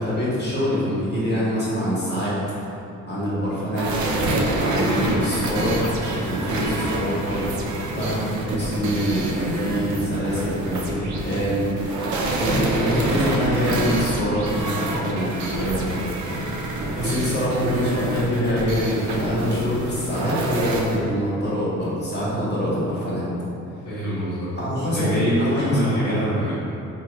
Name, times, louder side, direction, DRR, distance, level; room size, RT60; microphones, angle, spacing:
voice 1, 0.0-2.3 3.1-3.9 4.6-7.6 7.9-16.0 17.0-23.3 24.6-25.1 25.4-26.2, equal, 35° left, -8 dB, 1.4 m, -25 dB
sound 1, 3.7-21.0, right 2 dB, 75° right, 0.6 m, -26 dB
voice 2, 23.8-24.5 24.8-26.5, equal, 65° left, -15 dB, 1.4 m, -24 dB
4.2 x 3.0 x 2.3 m, 2.7 s
cardioid pair, 90°, 30 cm